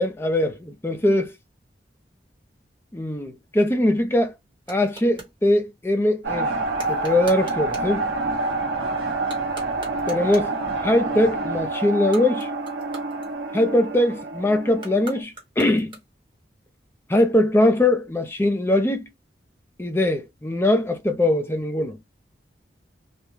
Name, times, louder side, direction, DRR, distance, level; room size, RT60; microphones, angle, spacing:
voice 1, 0.0-1.3 2.9-4.3 4.7-8.1 10.1-10.5 10.8-12.5 13.5-16.0 17.1-19.1 19.8-22.0, left 1 dB, 15° left, 0.3 m, -21 dB
sound 1, 4.1-5.4 6.7-8.0 9.2-10.6 11.9-13.8 14.7-16.3, right 3 dB, 25° right, 1.0 m, -43 dB
sound 2, 6.2-15.2, right 2 dB, 75° right, 0.8 m, -27 dB
2.3 x 2.1 x 3.1 m
head